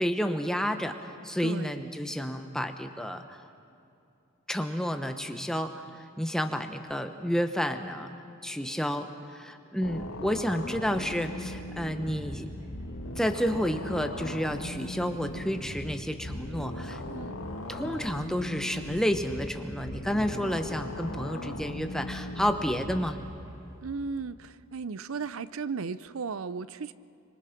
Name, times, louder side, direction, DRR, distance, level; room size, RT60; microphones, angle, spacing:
voice 1, 0.0-3.4 4.5-8.1 8.4-12.5 13.2-17.0 17.7-23.2, equal, 5° left, 6 dB, 1.1 m, -30 dB
voice 2, 1.4-1.8 17.0-17.4 23.8-26.9, right 5 dB, 85° right, 16 dB, 0.6 m, -35 dB
sound 1, 9.8-23.1, left 1 dB, 90° left, 2.1 m, -39 dB
sound 2, 10.7-24.1, equal, 15° right, 4.1 m, -49 dB
26.5 x 25.0 x 6.0 m, 2.6 s
head